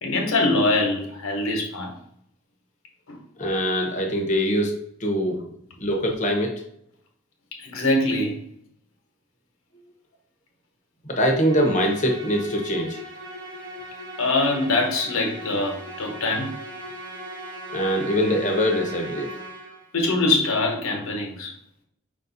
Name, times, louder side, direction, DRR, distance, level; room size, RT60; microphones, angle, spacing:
voice 1, 0.0-1.9 3.1-3.2 7.5-8.4 14.2-16.6 19.9-21.5, left 2 dB, 90° left, 1.2 m, -23 dB
voice 2, 3.4-4.7 5.0-5.4 5.8-6.5 11.0-13.0 17.7-19.3, equal, 35° left, 0.9 m, -23 dB
Musical instrument, 11.4-20.0, right 1 dB, 60° right, 1.0 m, -38 dB
5.1 x 2.6 x 3.9 m
head